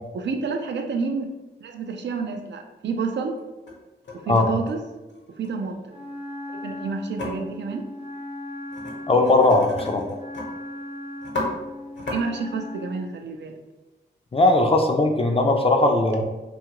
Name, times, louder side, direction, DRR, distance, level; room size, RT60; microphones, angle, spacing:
voice 1, 0.1-1.3 1.6-3.4 4.2-4.8 5.4-5.8 6.5-7.9 12.1-13.5, right 4 dB, 65° right, 5 dB, 0.4 m, -29 dB
sound 1, 2.6-2.7 3.4-3.7 4.0-5.5 7.2-7.3 8.7-8.9 9.2-10.5 10.8-10.9 11.2-11.5 11.9-12.2, left 2 dB, 70° left, 0.9 m, -33 dB
Wind instrument woodwind instrument, 5.9-13.1, left 1 dB, 35° right, 0.6 m, -37 dB
voice 2, 9.1-10.0 14.3-16.2, left 2 dB, 30° left, 3 dB, 0.4 m, -19 dB
2.7 x 2.4 x 2.9 m, 1.1 s
cardioid pair, 40°, 20 cm